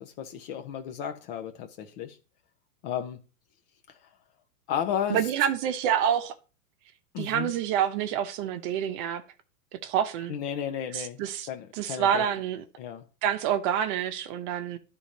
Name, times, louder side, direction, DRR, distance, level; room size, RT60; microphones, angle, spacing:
voice 1, 0.0-2.2 2.8-3.2 3.9-4.0 4.7-5.3 7.1-7.5 10.3-12.2 12.8-13.0, left 9 dB, 40° left, 1.0 m, -33 dB
voice 2, 5.1-6.3 7.2-9.2 9.7-10.3 10.9-11.5 11.7-12.6 13.2-14.8, right 9 dB, 35° right, 0.9 m, -27 dB
11.0 x 3.8 x 4.1 m
hypercardioid pair, 110°, 45 cm